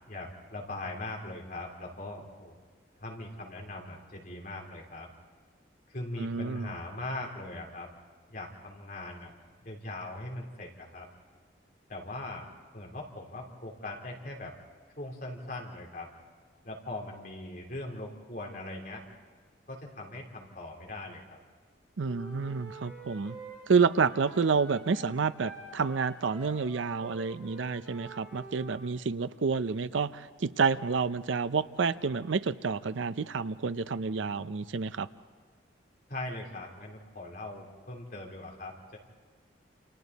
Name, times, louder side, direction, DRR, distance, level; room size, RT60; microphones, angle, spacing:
voice 1, 0.1-2.6 3.0-5.1 5.9-7.9 8.3-9.3 9.6-11.1 11.9-12.4 12.7-14.5 15.0-16.1 16.6-19.0 19.7-21.4 36.1-39.0, left 2 dB, 45° left, -1 dB, 3.5 m, -40 dB
voice 2, 6.2-6.7 22.0-23.4 23.7-35.1, right 5 dB, 80° right, 15 dB, 0.6 m, -29 dB
Wind instrument woodwind instrument, 22.0-28.8, right 3 dB, 5° right, 7.3 m, -47 dB
29.0 x 27.5 x 4.1 m, 1.5 s
head